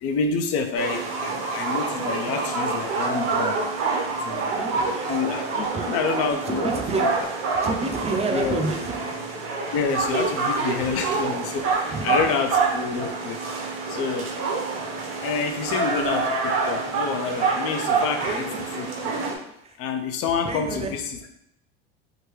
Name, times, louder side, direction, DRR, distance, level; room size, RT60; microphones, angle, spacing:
voice 1, 0.0-3.6 4.2-4.5 5.1-7.3 8.3-8.6 9.7-13.4 13.9-14.3 15.2-19.1 19.8-21.2, left 5 dB, 50° left, 6 dB, 0.6 m, -28 dB
sound 1, 0.7-19.3, right 4 dB, 70° right, 1.0 m, -27 dB
voice 2, 4.5-5.1 5.7-5.9 6.5-7.1 7.6-8.9 10.8-10.9 11.9-12.3 18.3-18.6 19.6-19.8 20.4-21.0, right 3 dB, 20° right, 4 dB, 0.5 m, -29 dB
3.7 x 2.2 x 3.1 m, 0.80 s
supercardioid pair, 100°, 30 cm